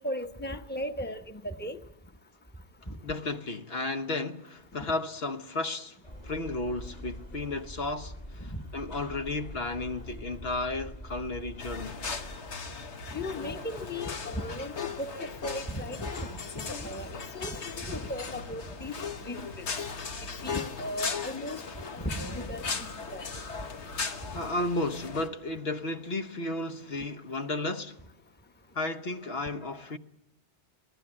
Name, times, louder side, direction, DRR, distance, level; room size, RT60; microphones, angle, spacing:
voice 1, 0.0-1.8 13.1-16.4 16.8-18.9 19.2-19.7 20.4-23.3, left 1 dB, 10° left, 1.1 m, -36 dB
voice 2, 3.0-6.0 6.2-12.0 23.9-28.0 28.7-30.0, left 2 dB, 65° left, 1.4 m, -33 dB
sound 1, 6.0-12.4, equal, 35° left, 2.5 m, -44 dB
sound 2, 11.6-25.3, left 5 dB, 85° left, 1.6 m, -38 dB
27.0 x 19.0 x 8.8 m
omnidirectional pair, 1.1 m